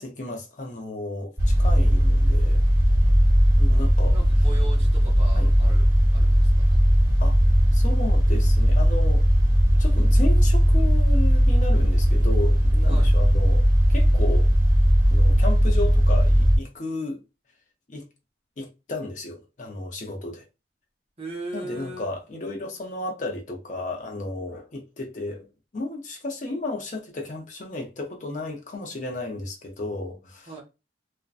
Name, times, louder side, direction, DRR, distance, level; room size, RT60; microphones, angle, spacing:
voice 1, 0.0-2.6 3.6-4.2 5.3-5.5 7.2-7.4 7.7-9.3 9.8-13.6 13.9-14.5 15.1-17.2 17.9-18.0 18.6-20.4 21.5-25.5 25.7-30.5, left 2 dB, 40° left, 0.5 m, -33 dB
sound 1, 1.4-16.6, equal, 20° right, 1.2 m, -18 dB
voice 2, 4.1-5.9 6.1-6.8 12.9-13.1 21.2-22.1 30.5-30.6, right 2 dB, 35° right, 0.8 m, -38 dB
2.5 x 2.1 x 2.3 m
head